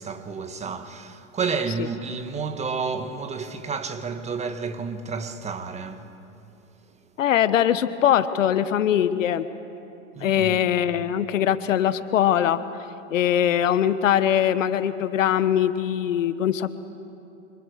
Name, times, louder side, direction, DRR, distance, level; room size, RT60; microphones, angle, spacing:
voice 1, 0.0-6.1 10.1-10.6, right 5 dB, 15° right, 1.6 m, -30 dB
voice 2, 7.2-9.4 10.2-12.6 13.1-16.7, left 10 dB, 80° left, 1.3 m, -21 dB
29.0 x 26.0 x 6.8 m
hypercardioid pair, 115°, 38 cm